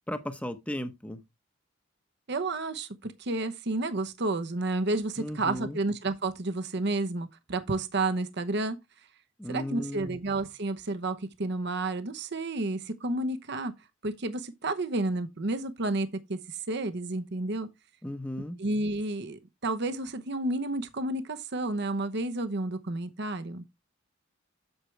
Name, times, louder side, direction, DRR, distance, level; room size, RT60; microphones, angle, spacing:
voice 1, 0.1-1.2 5.2-5.8 9.4-10.2 18.0-18.6, left 1 dB, 5° left, 0.9 m, -35 dB
voice 2, 2.3-8.8 9.5-13.7 14.0-17.7 18.6-23.6, right 2 dB, 55° right, 0.9 m, -31 dB
8.0 x 7.5 x 3.3 m
head